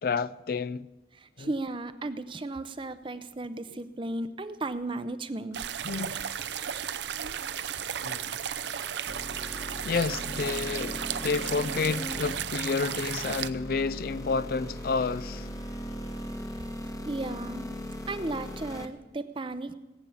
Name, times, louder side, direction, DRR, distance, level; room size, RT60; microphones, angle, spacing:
voice 1, 0.0-0.9 1.4-1.5 5.8-6.2 8.0-8.5 9.8-15.5, left 4 dB, 55° left, 0.4 m, -30 dB
voice 2, 1.1-5.6 17.1-17.6 18.1-19.7, right 2 dB, 30° right, 0.6 m, -35 dB
sound 1, 5.5-13.5, right 9 dB, 75° right, 0.6 m, -34 dB
sound 2, 9.1-18.9, equal, 20° left, 1.0 m, -39 dB
18.5 x 8.8 x 7.1 m
head